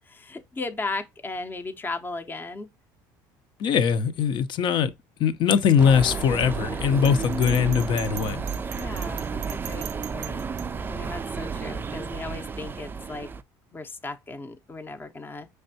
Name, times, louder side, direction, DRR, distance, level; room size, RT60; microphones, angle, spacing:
voice 1, 0.0-2.7 7.1-7.4 8.7-10.5 10.9-13.3 13.7-15.5, left 3 dB, 20° left, 0.6 m, -36 dB
voice 2, 3.6-4.9 5.2-8.4, left 7 dB, 55° left, 0.6 m, -21 dB
sound 1, 5.8-13.4, right 5 dB, 20° right, 0.3 m, -32 dB
Bell, 7.0-10.6, right 13 dB, 85° right, 0.5 m, -40 dB
5.3 x 3.4 x 2.6 m
supercardioid pair, 90°, 10 cm